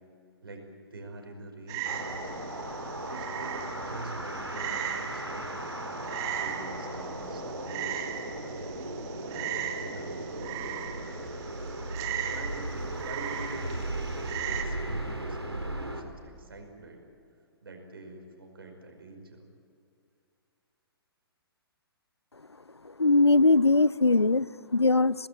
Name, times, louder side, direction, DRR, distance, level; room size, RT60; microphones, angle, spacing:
voice 1, 0.4-2.1 3.1-5.6 6.4-8.1 9.0-11.2 12.3-13.9 14.6-17.0 17.6-19.5, right 2 dB, 65° right, 3 dB, 5.4 m, -45 dB
Frog, 1.7-14.6, right 10 dB, 25° right, 1.9 m, -38 dB
sound 1, 1.8-16.0, right 1 dB, 90° right, 3.2 m, -36 dB
voice 2, 22.8-25.3, left 3 dB, 90° left, 22 dB, 0.5 m, -21 dB
25.5 x 19.5 x 8.8 m, 2.5 s
figure-of-eight pair, 125°, 13 cm